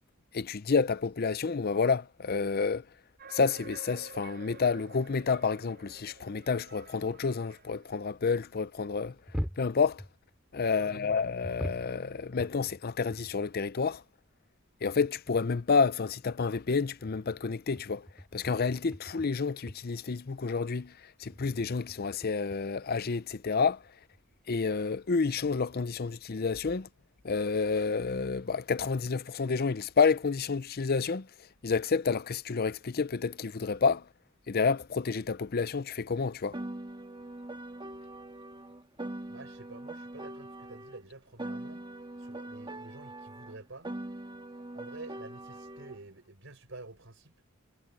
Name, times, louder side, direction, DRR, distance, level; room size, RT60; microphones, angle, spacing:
voice 1, 0.3-2.8 3.3-9.1 9.6-10.0 10.5-14.0 14.8-18.1 18.3-20.9 21.2-23.8 24.5-26.9 27.2-31.3 31.6-34.0 34.5-36.6, left 5 dB, 45° left, 0.6 m, -29 dB
sound 1, 3.2-8.0, right 4 dB, 45° right, 5.8 m, -50 dB
sound 2, 8.9-10.4 11.4-13.5 13.8-13.9 14.4-14.5 14.8-15.4 16.8-19.4 19.7-19.9 21.2-22.6 23.8-23.9 24.1-24.4, equal, 5° right, 3.3 m, -42 dB
voice 2, 10.7-11.2 39.2-41.9 42.2-43.9 44.7-47.3, right 2 dB, 60° right, 5.7 m, -49 dB
Piano, 36.5-41.0 41.4-46.0, right 1 dB, 20° right, 1.7 m, -42 dB
head